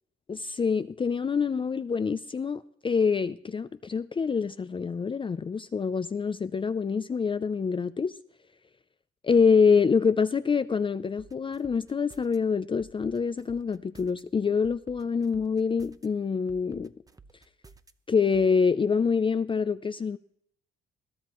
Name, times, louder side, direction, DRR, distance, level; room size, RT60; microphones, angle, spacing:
voice 1, 0.3-8.1 9.2-16.9 18.1-20.2, left 5 dB, 25° left, 0.5 m, -26 dB
sound 1, 11.2-12.4 12.8-14.2 14.6-16.1 16.5-17.9 18.3-18.5, right 4 dB, 20° right, 0.8 m, -53 dB
21.5 x 14.0 x 3.0 m
cardioid pair, 90°, 20 cm